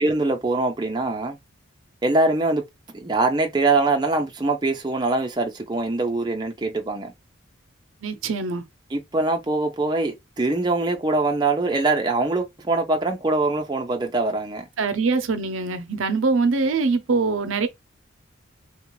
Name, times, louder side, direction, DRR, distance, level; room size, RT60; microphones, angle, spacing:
voice 1, 0.0-1.4 2.0-2.6 2.9-7.1 8.9-14.7, right 2 dB, 20° right, 0.5 m, -23 dB
voice 2, 8.0-8.6 14.8-17.7, right 4 dB, 80° right, 0.6 m, -23 dB
3.6 x 2.4 x 3.0 m
head